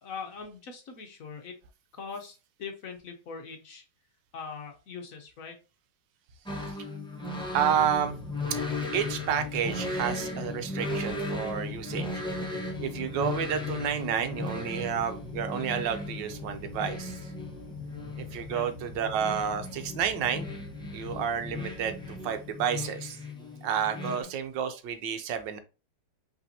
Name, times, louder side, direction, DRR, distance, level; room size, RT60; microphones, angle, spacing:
voice 1, 0.0-1.6 1.9-3.8 4.3-5.6 18.5-18.7 24.0-24.3, left 5 dB, 60° left, 4 dB, 1.0 m, -42 dB
sound 1, 6.5-24.2, left 2 dB, 5° left, 0.6 m, -36 dB
sound 2, 7.5-23.2, equal, 30° right, 2.5 m, -46 dB
voice 2, 7.5-8.2 8.9-12.1 12.5-17.2 18.2-20.5 20.9-23.2 23.6-25.6, right 8 dB, 80° right, 8 dB, 1.4 m, -30 dB
5.5 x 3.4 x 2.7 m, 0.31 s
omnidirectional pair, 1.9 m